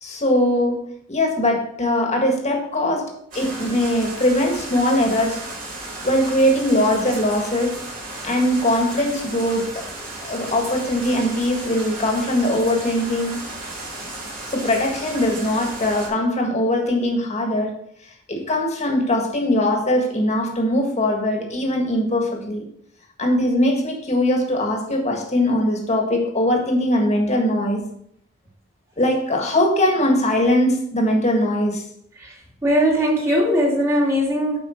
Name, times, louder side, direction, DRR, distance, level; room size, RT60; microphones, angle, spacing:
voice 1, 0.0-0.8 1.1-5.4 6.0-7.8 8.2-9.9 10.2-13.4 14.5-17.8 18.3-22.6 23.2-27.9 29.0-31.8, left 1 dB, 35° left, 2 dB, 1.7 m, -21 dB
sound 1, 3.3-16.1, right 2 dB, 45° right, 3.1 m, -34 dB
voice 2, 32.2-34.6, equal, 15° right, -3 dB, 2.4 m, -20 dB
8.5 x 5.3 x 4.5 m, 0.70 s
head